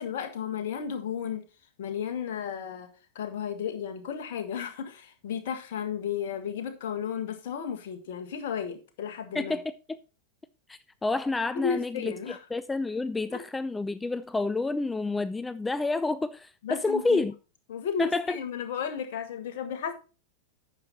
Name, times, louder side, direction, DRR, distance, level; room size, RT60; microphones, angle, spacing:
voice 1, 0.0-1.4 1.8-2.9 3.1-9.6 11.5-12.4 13.3-13.4 16.6-17.2 17.7-19.9, left 7 dB, 55° left, 1.6 m, -33 dB
voice 2, 9.3-9.7 10.7-17.3 18.0-18.4, left 3 dB, 10° left, 0.3 m, -29 dB
9.7 x 6.5 x 4.0 m
figure-of-eight pair, 90°, 0 cm